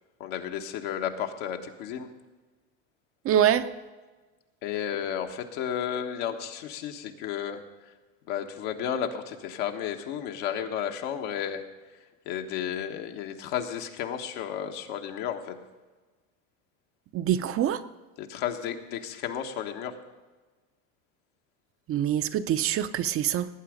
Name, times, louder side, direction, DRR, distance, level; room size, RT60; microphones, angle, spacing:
voice 1, 0.2-2.1 4.6-7.6 8.3-11.6 12.2-15.5 18.2-20.0, left 9 dB, 70° left, 1.5 m, -33 dB
voice 2, 3.2-3.7 17.1-17.8 21.9-23.5, right 10 dB, 35° right, 0.6 m, -25 dB
18.5 x 8.5 x 5.1 m
supercardioid pair, 115°, 40 cm